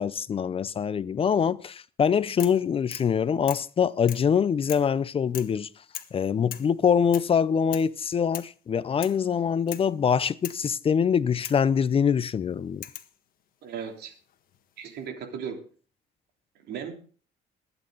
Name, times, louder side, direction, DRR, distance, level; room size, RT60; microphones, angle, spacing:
voice 1, 0.0-5.7 6.1-12.8, left 7 dB, 35° left, 0.6 m, -24 dB
sound 1, 2.4-2.6 2.9-3.1 3.5-3.7 4.1-4.3 4.7-4.9 5.3-5.6 5.9-6.2 6.5-6.7 7.1-7.3 7.7-7.9 8.3-8.6 9.0-9.2 9.7-9.9 10.4-10.6 11.4-11.7 12.8-13.1 14.3-14.8, left 11 dB, 60° left, 1.5 m, -39 dB
voice 2, 13.6-14.1 14.8-15.6 16.6-16.9, right 7 dB, 75° right, 3.2 m, -36 dB
21.0 x 8.9 x 4.0 m
cardioid pair, 110°, 17 cm